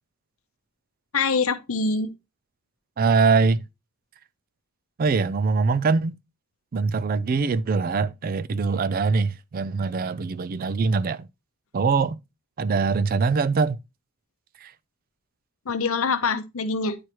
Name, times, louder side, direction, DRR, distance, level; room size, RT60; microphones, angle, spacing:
voice 1, 1.1-2.1 15.7-17.0, left 4 dB, 75° left, 0.7 m, -24 dB
voice 2, 3.0-3.6 5.0-6.1 6.7-11.3 11.7-12.2 12.6-13.8 14.6-14.7, right 4 dB, 40° right, 0.3 m, -23 dB
9.6 x 4.6 x 3.0 m
head